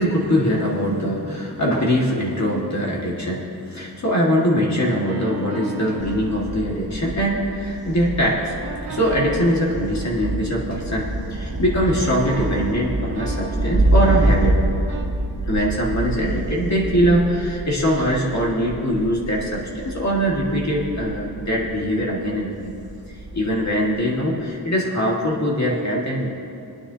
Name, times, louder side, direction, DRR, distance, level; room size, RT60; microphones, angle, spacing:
voice 1, 0.0-8.5 8.9-14.6 15.5-22.7 23.3-26.3, equal, 45° left, -4 dB, 1.9 m, -22 dB
sound 1, 5.1-7.7 8.4-11.5 11.8-15.1, right 2 dB, 85° right, 1.8 m, -35 dB
Thunder, 6.0-24.1, right 1 dB, 65° right, 2.1 m, -27 dB
24.5 x 9.7 x 2.8 m, 2.6 s
wide cardioid pair, 110°, 40 cm